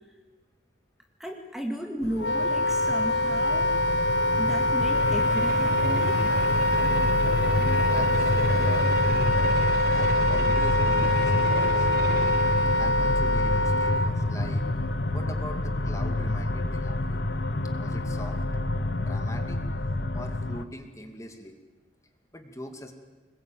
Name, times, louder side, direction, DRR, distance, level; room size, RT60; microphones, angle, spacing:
voice 1, 1.2-3.7 4.4-6.2, equal, ahead, 2 dB, 2.1 m, -34 dB
sound 1, 2.0-20.6, left 1 dB, 65° left, 1.2 m, -28 dB
Wind instrument woodwind instrument, 2.2-14.1, left 1 dB, 85° left, 1.1 m, -24 dB
sound 2, 4.9-13.4, right 4 dB, 55° right, 0.8 m, -36 dB
voice 2, 7.8-9.2 9.9-11.9 12.8-14.6 15.1-17.2 17.7-18.4 19.0-19.6 20.1-21.6 22.3-22.9, left 1 dB, 15° left, 5 dB, 2.5 m, -42 dB
25.5 x 21.0 x 9.4 m, 1.3 s
head